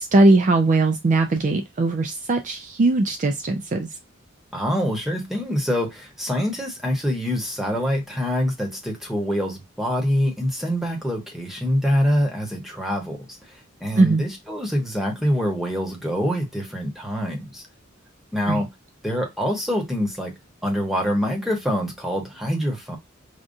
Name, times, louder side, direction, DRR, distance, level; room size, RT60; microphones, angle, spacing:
voice 1, 0.0-3.9 14.0-14.2 18.5-18.6, right 2 dB, 40° right, 0.4 m, -19 dB
voice 2, 4.5-13.3 13.8-17.6 18.3-18.7 19.0-20.3 20.6-23.0, equal, ahead, 1.0 m, -25 dB
4.9 x 2.3 x 2.6 m
head